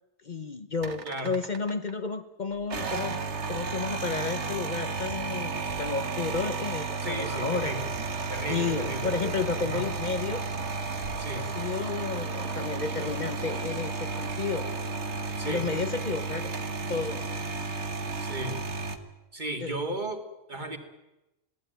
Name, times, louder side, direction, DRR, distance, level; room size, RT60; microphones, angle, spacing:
voice 1, 0.2-7.7 8.2-10.4 11.3-14.7 15.4-16.5 16.9-17.2 19.6-19.7, left 4 dB, 45° left, 9 dB, 1.0 m, -32 dB
sound 1, 0.8-1.9 2.6-19.0, right 4 dB, 85° right, 1.7 m, -33 dB
voice 2, 1.0-1.4 7.0-7.9 8.3-9.9 11.2-11.5 15.4-15.7 18.2-18.6 19.3-20.2 20.5-20.8, right 1 dB, 45° right, 5 dB, 2.4 m, -35 dB
21.5 x 16.5 x 9.1 m, 0.97 s
omnidirectional pair, 1.1 m